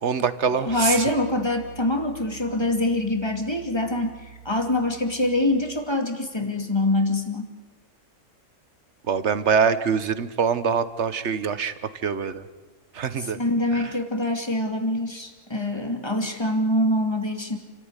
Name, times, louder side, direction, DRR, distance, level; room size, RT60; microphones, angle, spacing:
voice 1, 0.0-1.1 9.1-11.7 12.0-12.4 12.9-13.4 13.7-13.9, right 6 dB, 60° right, 13 dB, 1.4 m, -24 dB
Piano, 0.7-5.8, right 11 dB, 85° left, 3.2 m, -46 dB
voice 2, 0.7-7.5 13.3-17.6, left 1 dB, 20° left, 5 dB, 2.5 m, -24 dB
28.5 x 14.0 x 9.8 m, 1.3 s
omnidirectional pair, 1.4 m